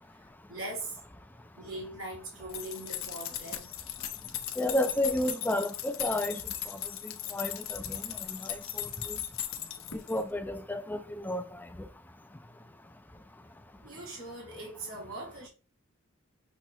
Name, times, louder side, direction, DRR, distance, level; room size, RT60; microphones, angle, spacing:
voice 1, 0.1-1.0 1.6-4.1 13.8-15.5, right 2 dB, 85° right, 1.3 m, -41 dB
sound 1, 2.5-10.2, left 11 dB, 70° left, 0.6 m, -38 dB
voice 2, 4.6-9.2 9.9-11.7, left 1 dB, 10° left, 0.4 m, -32 dB
6.0 x 2.1 x 4.1 m
head